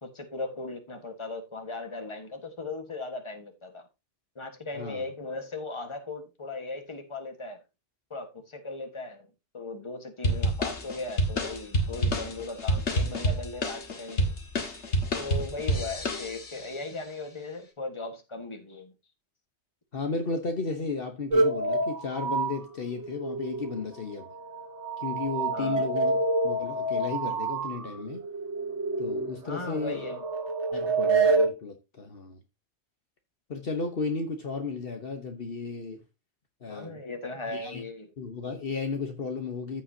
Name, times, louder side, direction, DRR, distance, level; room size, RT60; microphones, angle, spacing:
voice 1, 0.0-3.9 4.3-7.6 8.1-9.3 9.5-14.3 15.2-18.9 25.5-25.9 29.4-30.3 36.7-38.1, left 3 dB, 25° left, 1.6 m, -38 dB
sound 1, 10.2-16.7, equal, 90° left, 2.0 m, -28 dB
voice 2, 19.9-24.3 25.0-28.2 29.0-30.1 30.7-32.4 33.5-36.0 36.6-37.0 37.5-37.8 38.2-39.8, left 4 dB, 55° left, 1.3 m, -34 dB
sound 2, 21.3-23.9 24.2-31.5, right 3 dB, 85° right, 1.8 m, -28 dB
14.5 x 5.5 x 2.8 m
omnidirectional pair, 1.1 m